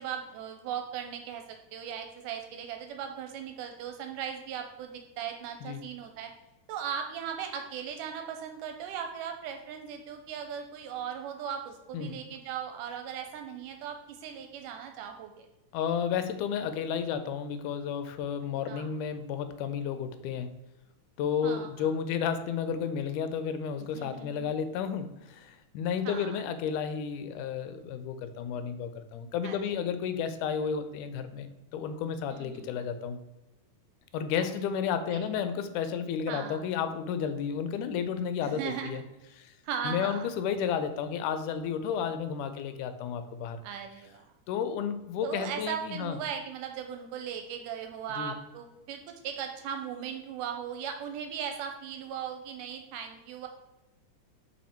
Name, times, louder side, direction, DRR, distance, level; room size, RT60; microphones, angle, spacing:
voice 1, 0.0-1.4 1.7-6.3 6.7-15.5 18.7-18.9 21.4-21.9 23.9-24.5 26.1-26.4 29.4-29.7 32.3-33.0 34.4-34.5 35.1-35.3 36.3-36.6 38.4-39.0 39.6-40.3 43.6-44.3 45.2-53.5, right 8 dB, 85° right, 5 dB, 2.2 m, -38 dB
voice 2, 15.7-20.5 21.2-33.2 34.1-39.0 39.4-39.5 39.8-43.6 44.5-46.2 48.2-48.3, left 7 dB, 80° left, 10 dB, 2.0 m, -32 dB
5.6 x 4.8 x 4.3 m, 1.0 s
omnidirectional pair, 3.7 m